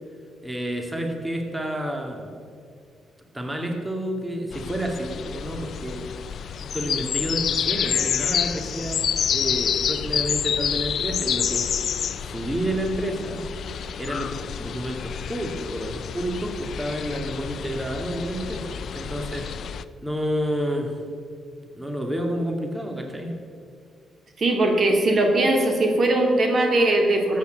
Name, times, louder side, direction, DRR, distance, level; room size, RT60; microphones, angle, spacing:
voice 1, 0.4-2.3 3.3-6.1 6.7-11.7 12.2-13.5 14.0-19.5 20.0-20.9 21.7-23.4, equal, 15° right, 2 dB, 2.3 m, -29 dB
sound 1, 4.5-19.8, left 8 dB, 65° left, 0.5 m, -28 dB
voice 2, 24.4-27.4, right 2 dB, 50° right, 3 dB, 2.5 m, -20 dB
13.0 x 8.7 x 8.1 m, 2.2 s
supercardioid pair, 60°, 0 cm